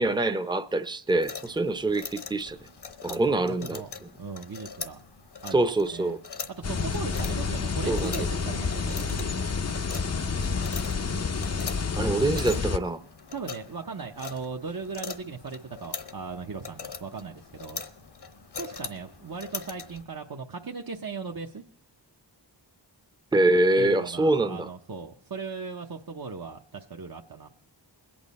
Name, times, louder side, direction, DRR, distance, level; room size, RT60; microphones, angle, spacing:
voice 1, 0.0-2.6 3.0-4.1 5.5-6.2 7.9-8.2 12.0-13.0 23.3-24.7, right 2 dB, 10° right, 0.6 m, -25 dB
sound 1, 1.1-20.0, left 5 dB, 60° left, 1.0 m, -42 dB
voice 2, 4.2-5.0 5.4-6.2 6.5-9.4 13.3-17.8 18.6-21.6 23.8-27.5, right 5 dB, 50° right, 0.8 m, -38 dB
sound 2, 6.6-12.8, left 4 dB, 35° left, 0.5 m, -29 dB
22.0 x 8.8 x 4.1 m
wide cardioid pair, 55°, 44 cm